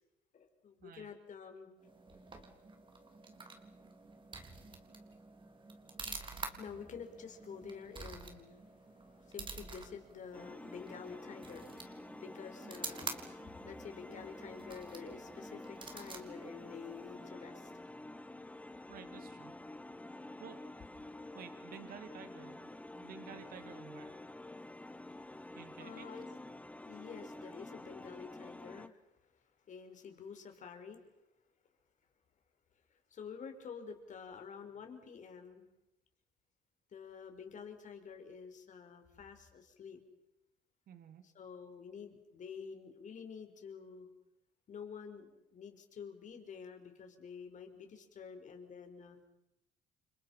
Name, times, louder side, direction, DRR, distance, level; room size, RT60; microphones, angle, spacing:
voice 1, 0.3-1.7 6.2-8.6 9.1-17.7 25.8-26.2 26.8-29.0 29.7-31.0 32.9-35.6 36.9-40.0 41.2-44.1 44.7-49.2, left 6 dB, 45° left, 6 dB, 5.0 m, -49 dB
sound 1, 1.8-17.4, right 4 dB, 30° right, 3.7 m, -49 dB
sound 2, 10.3-28.9, left 2 dB, 10° left, 1.3 m, -49 dB
voice 2, 18.9-19.6 20.4-20.6 21.3-24.2 25.5-26.1 40.9-41.2, right 8 dB, 60° right, 8 dB, 2.8 m, -52 dB
30.0 x 26.0 x 5.8 m, 0.87 s
cardioid pair, 110°, 17 cm